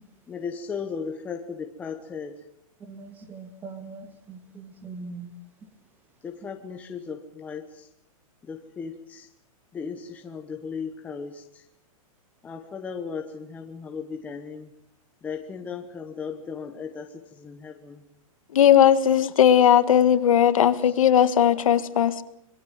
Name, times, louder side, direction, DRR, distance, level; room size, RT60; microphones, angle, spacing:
voice 1, 0.3-2.4 6.2-7.9 8.4-9.3 9.7-11.6 12.4-14.7 15.2-18.0 20.8-20.9, left 6 dB, 10° left, 1.0 m, -36 dB
voice 2, 2.8-5.3, right 4 dB, 10° right, 1.7 m, -41 dB
voice 3, 18.5-22.2, left 9 dB, 65° left, 1.8 m, -18 dB
26.0 x 21.5 x 7.6 m
supercardioid pair, 180°, 18 cm